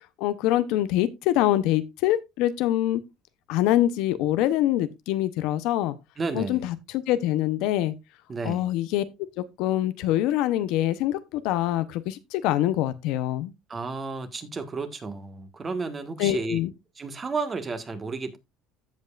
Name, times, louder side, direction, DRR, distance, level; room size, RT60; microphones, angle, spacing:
voice 1, 0.2-3.0 3.5-6.0 6.3-7.9 8.4-9.0 9.4-13.5 16.2-16.7, left 13 dB, 75° left, 0.8 m, -24 dB
voice 2, 6.2-6.6 8.3-8.7 13.7-16.6 17.0-18.4, right 4 dB, 25° right, 1.5 m, -32 dB
15.0 x 5.4 x 2.4 m
cardioid pair, 120°, 0 cm